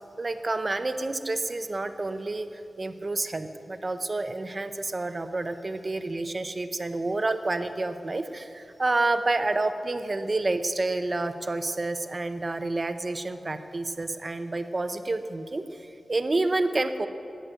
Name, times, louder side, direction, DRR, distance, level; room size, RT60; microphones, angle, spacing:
voice 1, 0.2-17.1, right 2 dB, 35° right, 9 dB, 0.8 m, -29 dB
19.5 x 8.0 x 7.8 m, 2.7 s
wide cardioid pair, 110°, 0 cm